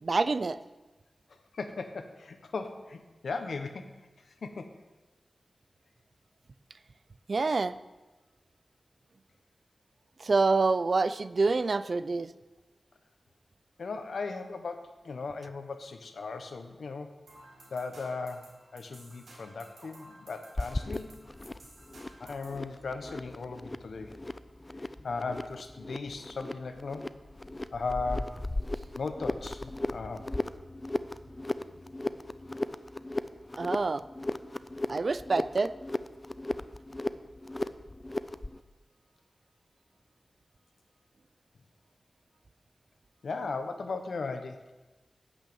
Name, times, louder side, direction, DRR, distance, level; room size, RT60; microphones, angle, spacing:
voice 1, 0.0-0.6 7.3-7.8 10.2-12.3 33.6-34.0 34.9-35.7, right 3 dB, 50° right, 14 dB, 0.4 m, -27 dB
voice 2, 1.5-3.9 4.4-4.7 13.8-17.1 17.7-21.3 22.2-24.2 25.0-27.1 27.7-28.5 29.0-30.3 43.2-44.6, left 4 dB, 90° left, 7 dB, 1.1 m, -37 dB
sound 1, 17.3-22.6, right 1 dB, 80° right, 4.8 m, -54 dB
sound 2, 20.6-38.6, left 2 dB, 20° left, 0.4 m, -37 dB
9.1 x 8.3 x 7.1 m, 1.1 s
wide cardioid pair, 120°, 0 cm